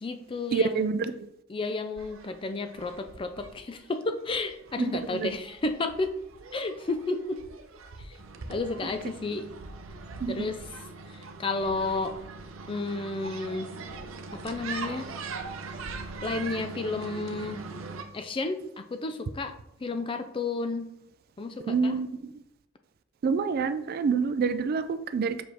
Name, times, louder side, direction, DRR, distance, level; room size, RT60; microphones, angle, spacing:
voice 1, 0.0-0.9 1.5-6.1 6.5-7.4 8.0-8.2 8.5-9.5 10.3-10.6 11.1-12.1 12.7-13.7 14.3-15.1 16.2-17.6 18.1-19.5 19.8-20.9 21.4-21.9, left 3 dB, 25° left, 7 dB, 0.4 m, -32 dB
voice 2, 0.5-1.3 4.8-5.3 10.2-10.5 21.6-22.3 23.2-25.4, right 5 dB, 50° right, 12 dB, 0.3 m, -27 dB
sound 1, 2.0-18.0, right 4 dB, 80° right, 0.7 m, -42 dB
6.1 x 4.8 x 3.4 m, 0.81 s
head